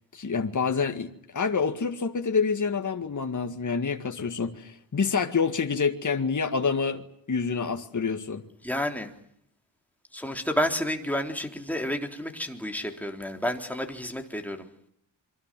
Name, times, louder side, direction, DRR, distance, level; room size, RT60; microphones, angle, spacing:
voice 1, 0.1-8.4, left 5 dB, 45° left, 2.1 m, -27 dB
voice 2, 8.6-9.1 10.1-14.7, equal, 5° left, 3.8 m, -30 dB
27.0 x 24.5 x 7.7 m
wide cardioid pair, 95°, 42 cm